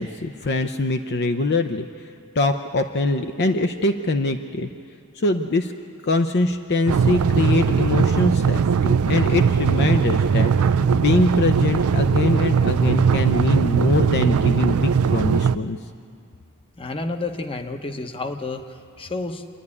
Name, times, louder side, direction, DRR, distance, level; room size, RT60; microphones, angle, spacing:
voice 1, 0.0-1.9 2.3-4.7 5.1-5.7 6.0-10.5 10.8-15.8, left 2 dB, 50° left, 6 dB, 0.7 m, -23 dB
sound 1, 6.9-15.6, right 6 dB, 75° right, 0.4 m, -19 dB
voice 2, 16.8-19.5, left 2 dB, 25° left, 7 dB, 1.0 m, -30 dB
27.0 x 11.0 x 9.8 m, 2.6 s
head